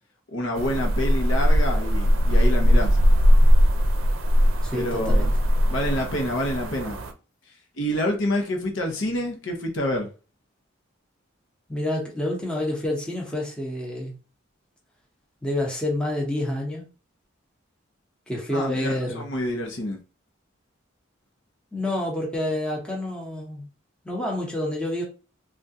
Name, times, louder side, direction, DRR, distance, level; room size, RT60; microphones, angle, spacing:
voice 1, 0.3-3.0 4.7-5.3 5.7-7.0 7.8-10.1 18.5-20.0, left 1 dB, 70° left, 0.9 m, -27 dB
sound 1, 0.6-7.1, equal, 80° right, 0.5 m, -20 dB
voice 2, 4.6-5.3 11.7-14.1 15.4-16.9 18.3-19.2 21.7-23.7 24.0-25.0, left 1 dB, 5° left, 0.8 m, -28 dB
3.5 x 2.4 x 2.7 m
head